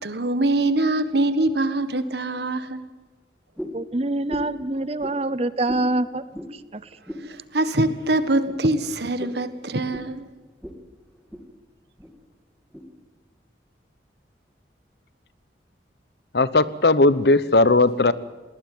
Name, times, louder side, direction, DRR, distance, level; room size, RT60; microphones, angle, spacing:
voice 1, 0.0-2.8 7.2-10.3, right 2 dB, 60° right, 12 dB, 1.6 m, -23 dB
sound 1, 3.6-3.8 4.3-4.6 5.0-5.2 5.7-5.9 6.3-6.5 7.1-7.3 7.8-7.9 8.4-8.6 9.2-9.4 9.9-10.1 10.6-10.8 11.1-11.5 12.0-12.1 12.7-12.8, equal, ahead, 2.3 m, -36 dB
voice 2, 3.7-6.2 6.7-6.8, right 2 dB, 30° right, 16 dB, 0.7 m, -25 dB
voice 3, 16.3-18.1, left 2 dB, 60° left, 17 dB, 0.9 m, -17 dB
20.5 x 19.0 x 9.3 m, 1.2 s
head